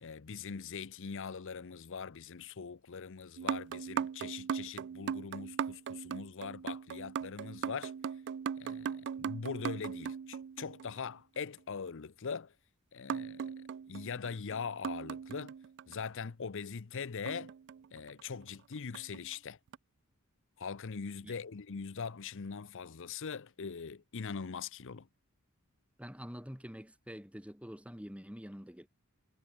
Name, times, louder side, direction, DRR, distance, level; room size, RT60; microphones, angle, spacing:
voice 1, 0.0-7.9 8.6-12.5 12.9-13.5 13.9-15.5 15.9-17.5 17.9-19.6 20.6-25.1, left 5 dB, 60° left, 0.7 m, -42 dB
sound 1, 3.4-11.1 13.1-16.0 17.3-18.3 18.9-19.2 19.7-19.8, right 7 dB, 55° right, 0.3 m, -39 dB
voice 2, 26.0-28.9, equal, 5° right, 6.3 m, -46 dB
head